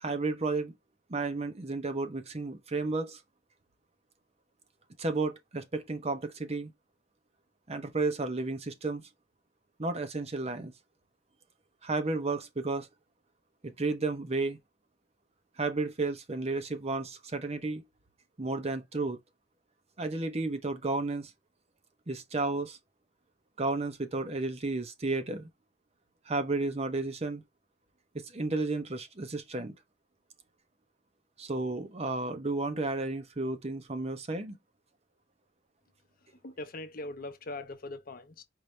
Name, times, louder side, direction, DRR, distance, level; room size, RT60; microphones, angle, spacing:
voice 1, 0.0-0.7 1.1-3.2 5.0-6.7 7.7-9.0 9.8-10.7 11.8-12.9 13.6-14.6 15.6-17.8 18.4-19.2 20.0-21.3 22.1-22.8 23.6-25.5 26.3-27.4 28.1-29.7 31.4-34.6, right 3 dB, 35° right, 0.8 m, -32 dB
voice 2, 36.4-38.4, left 2 dB, 50° left, 0.8 m, -41 dB
4.7 x 2.7 x 3.2 m
head